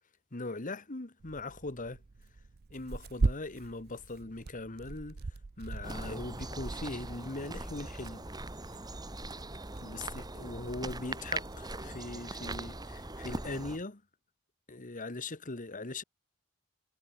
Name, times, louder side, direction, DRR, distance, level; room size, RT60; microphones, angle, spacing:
voice 1, 0.3-2.0 2.7-5.2 5.6-8.2 9.8-14.0 14.7-16.0, left 2 dB, 35° left, 1.5 m, -40 dB
Tearing, 1.2-13.8, right 3 dB, 45° right, 0.6 m, -41 dB
sound 1, 5.8-13.8, right 2 dB, 20° right, 3.0 m, -41 dB
head